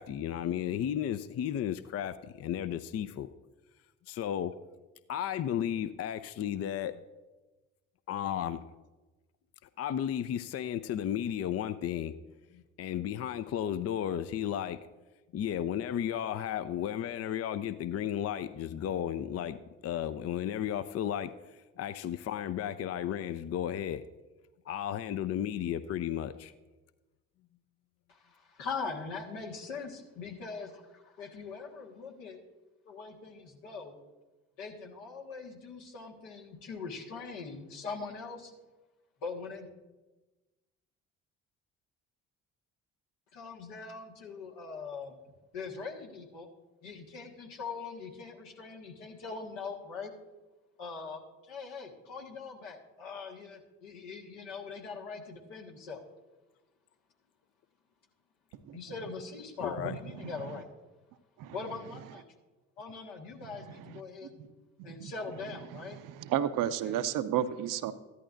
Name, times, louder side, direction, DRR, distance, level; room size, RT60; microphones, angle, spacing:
voice 1, 0.0-3.3 4.1-4.5 5.1-7.0 8.1-8.7 9.8-12.1 12.5-14.8 15.3-19.6 19.8-21.3 21.8-24.0 24.7-26.5 59.6-59.9, left 10 dB, 40° left, 13 dB, 0.5 m, -33 dB
voice 2, 28.1-32.4 32.9-34.0 34.6-38.5 39.2-39.7 43.3-45.2 45.5-46.5 46.8-50.1 50.8-56.0 58.7-60.7 61.5-62.2 62.8-64.5 64.8-66.0 66.8-66.9, left 4 dB, 75° left, 1 dB, 1.6 m, -42 dB
voice 3, 64.8-65.1 65.7-67.9, right 10 dB, 60° right, 12 dB, 0.7 m, -32 dB
14.0 x 11.0 x 2.6 m, 1.2 s
hypercardioid pair, 50°, 37 cm